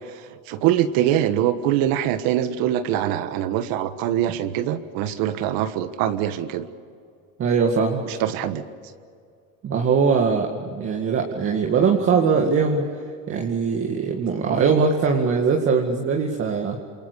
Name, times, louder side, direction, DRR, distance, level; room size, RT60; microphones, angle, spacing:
voice 1, 0.1-6.7 8.1-8.6, right 11 dB, 65° right, 10 dB, 1.4 m, -23 dB
voice 2, 7.4-8.0 9.6-12.8 13.3-16.8, right 5 dB, 35° right, 2 dB, 2.3 m, -21 dB
28.0 x 24.0 x 6.9 m, 2.3 s
cardioid pair, 135°, 38 cm